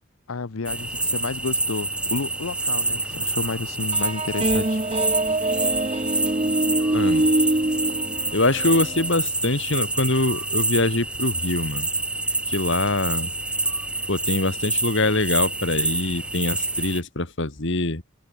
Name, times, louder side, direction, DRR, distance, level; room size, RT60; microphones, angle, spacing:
voice 1, 0.3-4.8, left 4 dB, 75° left, 0.8 m, -31 dB
sound 1, 0.7-17.0, right 2 dB, 5° right, 0.6 m, -27 dB
sound 2, 3.9-9.1, right 1 dB, 25° right, 1.2 m, -24 dB
voice 2, 6.9-7.3 8.3-11.9 12.5-13.3 14.1-18.0, left 2 dB, 55° left, 2.1 m, -24 dB
head